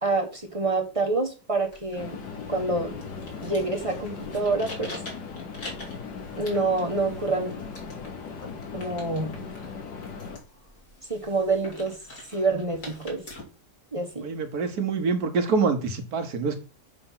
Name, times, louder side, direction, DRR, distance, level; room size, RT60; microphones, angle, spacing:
voice 1, 0.0-2.2 2.5-2.9 3.4-5.0 6.4-7.5 8.7-9.3 11.1-12.0 12.3-13.2 13.9-14.3, right 3 dB, 25° right, 2 dB, 1.0 m, -27 dB
sound 1, 1.6-13.4, left 2 dB, 55° left, 2.7 m, -45 dB
sound 2, 2.0-10.4, left 5 dB, 85° left, 1.8 m, -38 dB
voice 2, 14.2-16.6, right 4 dB, 70° right, 6 dB, 1.6 m, -25 dB
7.8 x 3.4 x 5.6 m, 0.32 s
omnidirectional pair, 1.7 m